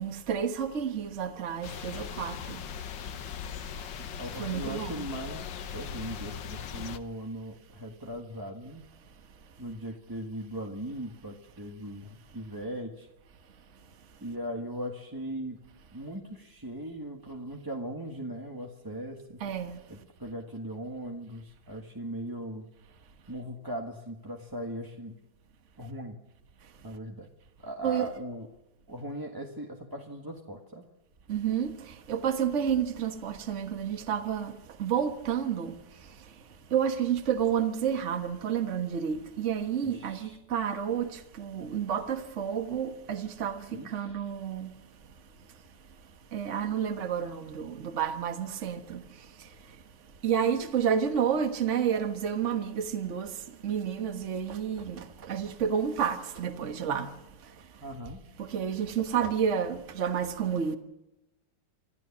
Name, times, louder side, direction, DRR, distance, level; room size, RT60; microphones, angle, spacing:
voice 1, 0.0-2.6 4.4-5.0 19.4-19.8 27.8-28.1 31.3-35.8 36.7-44.7 46.3-49.0 49.4-49.5 50.2-57.1 58.4-60.8, right 8 dB, 45° right, 1.6 m, -30 dB
sound 1, 1.6-7.0, left 8 dB, 85° left, 1.7 m, -39 dB
voice 2, 4.2-5.5 5.7-8.8 9.6-13.1 14.2-15.6 15.9-19.4 19.9-22.7 23.3-25.2 25.8-26.2 26.8-27.3 27.6-28.5 28.9-30.9 39.8-40.4 43.7-44.2 57.8-58.2, right 1 dB, 10° right, 1.6 m, -39 dB
25.5 x 14.5 x 7.3 m
omnidirectional pair, 1.9 m